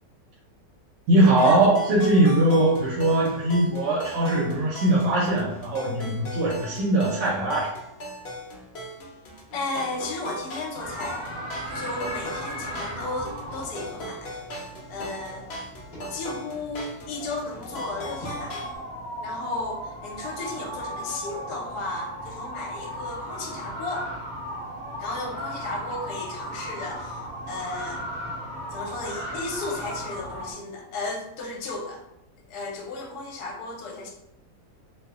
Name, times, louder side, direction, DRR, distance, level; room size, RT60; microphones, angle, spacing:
voice 1, 1.1-7.7, right 1 dB, 85° right, -5 dB, 1.3 m, -21 dB
sound 1, 1.2-18.8, left 1 dB, 85° left, 0.5 m, -39 dB
voice 2, 9.5-11.3 11.7-14.4 14.9-15.5 16.1-18.6 19.2-24.1 25.0-27.2 27.5-28.0 28.7-32.0 32.5-34.1, left 2 dB, 70° left, 0 dB, 1.1 m, -34 dB
sound 2, 10.8-30.5, equal, 35° left, 0.7 m, -36 dB
2.9 x 2.0 x 2.3 m, 0.82 s
omnidirectional pair, 1.9 m